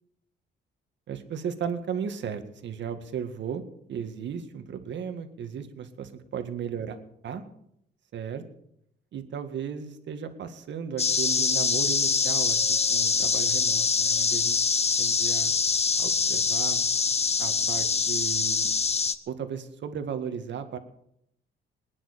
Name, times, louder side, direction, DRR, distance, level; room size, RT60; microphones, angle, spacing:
voice 1, 1.1-3.6 3.9-7.0 7.2-7.4 8.1-8.4 9.1-14.6 15.0-15.5 16.0-16.8 17.4-18.7 19.3-20.8, right 7 dB, 65° right, 8 dB, 2.0 m, -35 dB
sound 1, 11.0-19.2, left 5 dB, 30° left, 1.1 m, -24 dB
20.5 x 10.0 x 6.8 m, 0.76 s
cardioid pair, 90°, 20 cm